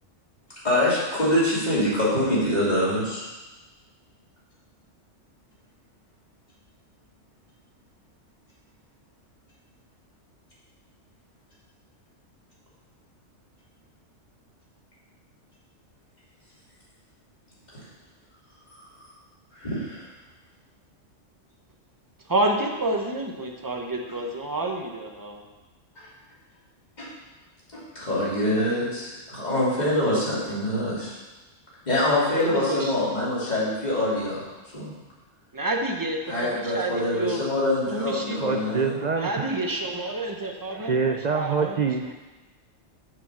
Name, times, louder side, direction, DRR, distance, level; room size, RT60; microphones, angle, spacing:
voice 1, 0.6-3.2 19.5-20.0 26.0-26.1 27.0-27.1 27.7-31.2 31.9-34.4 34.7-34.9 36.3-39.0, left 1 dB, 35° left, -7 dB, 2.9 m, -25 dB
voice 2, 22.3-25.4 29.9-30.2 30.5-30.6 32.3-33.0 35.5-37.4 37.9-38.4 39.1-41.9, right 2 dB, 20° right, 2 dB, 0.9 m, -29 dB
voice 3, 38.4-39.6 40.7-42.1, right 5 dB, 55° right, 4 dB, 0.4 m, -26 dB
7.0 x 6.3 x 6.2 m, 1.2 s
omnidirectional pair, 1.3 m